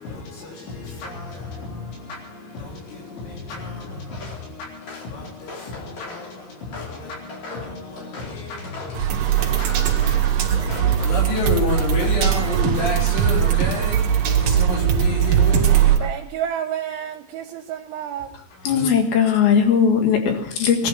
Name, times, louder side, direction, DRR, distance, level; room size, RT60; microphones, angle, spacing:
voice 1, 0.0-16.1 17.9-18.8, left 3 dB, 80° left, 6.1 m, -31 dB
Walk footsteps, 4.1-4.4 4.8-6.3 6.7-9.0 9.4-10.2 10.7-11.0 11.3-12.2 12.6-13.0, left 3 dB, 45° left, 3.9 m, -39 dB
sound 1, 9.0-16.0, right 9 dB, 60° right, 3.1 m, -19 dB
voice 2, 16.0-18.3, right 10 dB, 85° right, 3.3 m, -29 dB
voice 3, 18.7-20.9, left 7 dB, 60° left, 3.4 m, -18 dB
19.5 x 12.0 x 5.7 m
omnidirectional pair, 5.3 m